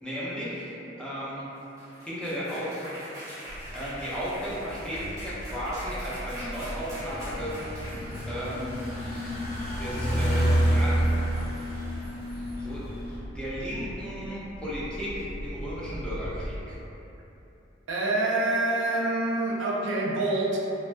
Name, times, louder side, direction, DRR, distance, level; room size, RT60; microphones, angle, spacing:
voice 1, 0.0-1.5 2.0-3.0 3.7-7.6 8.3-8.8 9.8-11.0 12.6-12.9 13.3-16.8, equal, 5° left, -9 dB, 0.5 m, -34 dB
sound 1, 1.6-9.8, equal, 20° right, 1.0 m, -43 dB
sound 2, 3.5-16.6, equal, 85° left, 0.4 m, -40 dB
sound 3, 6.9-13.2, equal, 45° left, 1.0 m, -28 dB
voice 2, 17.9-20.6, right 2 dB, 80° right, -4 dB, 0.4 m, -26 dB
3.3 x 2.1 x 2.5 m, 3.0 s
head